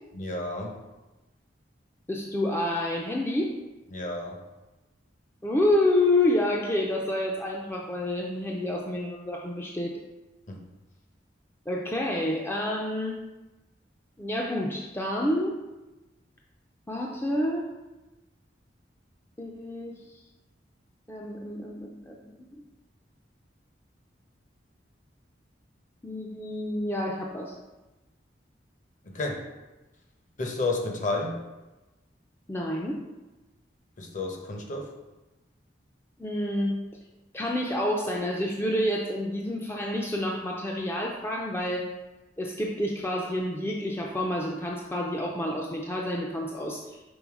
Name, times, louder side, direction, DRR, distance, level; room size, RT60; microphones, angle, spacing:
voice 1, 0.1-0.8 3.9-4.4 10.5-10.7 29.0-29.4 30.4-31.4 34.0-34.9, left 2 dB, 45° left, 1 dB, 0.9 m, -31 dB
voice 2, 2.1-3.5 5.4-10.0 11.7-13.2 14.2-15.6 16.9-17.7 19.4-20.0 21.1-22.3 26.0-27.5 32.5-33.0 36.2-36.8 37.3-41.9 42.4-47.0, left 1 dB, 15° left, -1 dB, 0.4 m, -28 dB
5.4 x 3.8 x 4.7 m, 1.1 s
head